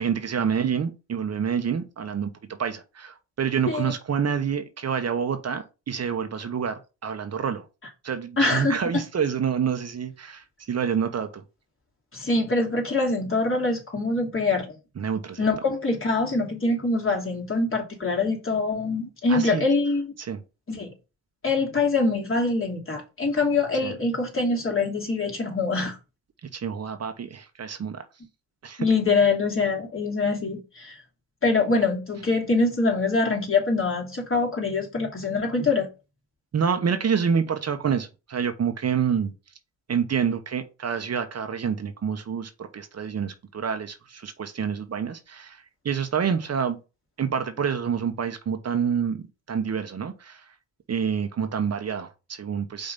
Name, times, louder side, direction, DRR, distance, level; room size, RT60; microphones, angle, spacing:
voice 1, 0.0-2.3 2.6-7.6 8.0-11.4 15.0-15.5 19.3-19.6 20.2-20.4 23.8-23.9 26.4-28.0 28.6-28.9 36.5-39.3 39.9-46.8 47.2-50.4 50.9-52.9, right 7 dB, 45° right, 1.2 m, -27 dB
voice 2, 8.4-9.0 12.1-14.8 15.4-20.1 20.7-20.9 21.4-25.9 28.8-31.0 31.4-35.9, left 3 dB, 35° left, 3.0 m, -24 dB
5.3 x 3.8 x 5.5 m
hypercardioid pair, 50°, 35 cm